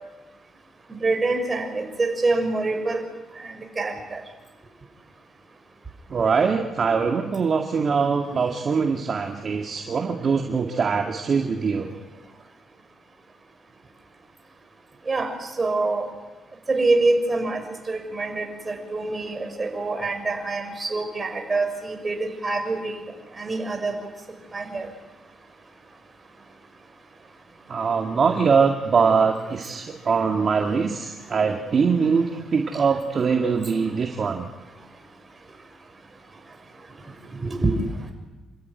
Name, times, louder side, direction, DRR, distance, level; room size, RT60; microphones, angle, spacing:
voice 1, 1.0-3.0 3.4-4.2 15.1-15.3 15.6-16.1 16.7-17.6 17.9-22.2 22.4-22.9 23.4-23.9 24.5-24.9 37.4-37.7, right 3 dB, 25° right, 3 dB, 6.5 m, -25 dB
voice 2, 6.1-11.9 27.7-34.5, right 5 dB, 45° right, 3 dB, 2.1 m, -22 dB
28.5 x 14.0 x 9.7 m, 1.1 s
cardioid pair, 90°, 0 cm